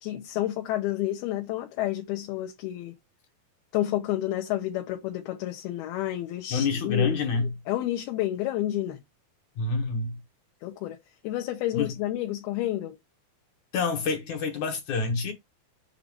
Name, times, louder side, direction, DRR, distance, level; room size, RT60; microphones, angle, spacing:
voice 1, 0.0-3.0 3.7-7.2 7.7-9.0 10.6-11.0 11.2-13.0, left 14 dB, 85° left, 2.9 m, -30 dB
voice 2, 6.5-7.5 9.6-10.2 11.7-11.9 13.7-15.3, left 4 dB, 60° left, 2.3 m, -27 dB
7.4 x 2.6 x 5.3 m
omnidirectional pair, 4.4 m